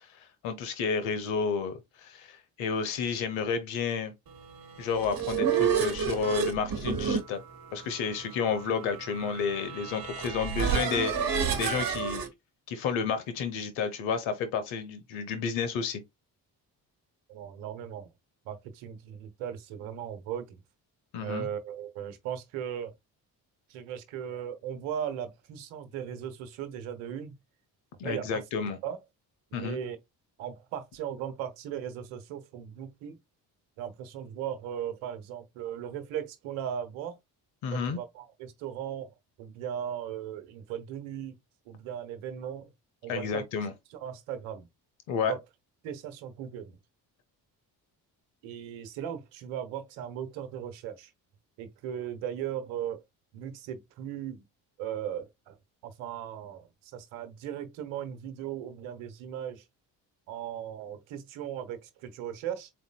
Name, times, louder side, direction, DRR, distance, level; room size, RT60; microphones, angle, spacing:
voice 1, 0.4-4.1 4.8-7.4 7.7-11.1 11.6-12.2 12.7-16.0 21.1-21.5 28.0-28.8 29.5-29.8 37.6-38.0 43.1-43.7 45.1-45.3, left 6 dB, 85° left, 1.0 m, -31 dB
sound 1, 4.8-12.3, right 6 dB, 50° right, 1.2 m, -30 dB
voice 2, 17.3-18.1 18.4-20.6 21.2-22.9 23.7-27.3 28.0-28.4 28.8-29.0 29.5-30.0 30.4-33.2 33.8-37.2 37.7-39.1 39.4-41.4 41.7-42.7 43.0-43.4 43.9-44.7 45.2-45.4 45.8-46.8 48.4-51.1 51.6-53.0 53.3-54.4 54.8-55.6 55.8-59.6 60.3-62.7, right 9 dB, 85° right, 1.0 m, -37 dB
4.8 x 4.1 x 2.2 m
supercardioid pair, 50°, 46 cm